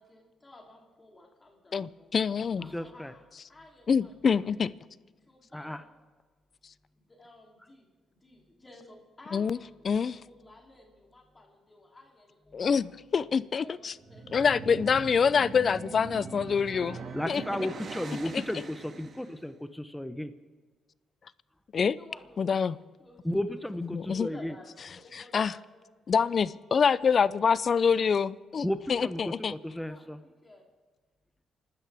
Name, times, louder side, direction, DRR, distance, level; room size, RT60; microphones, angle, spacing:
voice 1, 0.0-2.1 2.5-4.6 5.2-5.9 6.9-13.0 13.5-14.4 19.2-19.4 21.9-25.9 29.7-30.7, left 2 dB, 25° left, 3.0 m, -54 dB
voice 2, 1.7-2.7 3.9-4.7 9.3-9.6 9.9-10.2 12.5-13.9 14.3-17.0 17.3-17.4 18.3-18.4 21.7-21.9 22.4-22.8 23.9-24.3 25.1-25.5 26.1-29.5, left 6 dB, 45° left, 0.5 m, -26 dB
voice 3, 2.6-3.1 5.5-5.8 17.1-20.3 23.2-24.5 28.6-30.2, left 1 dB, 5° left, 0.8 m, -34 dB
sound 1, 13.9-19.3, right 4 dB, 50° right, 1.9 m, -42 dB
28.5 x 12.5 x 3.5 m
cardioid pair, 90°, 0 cm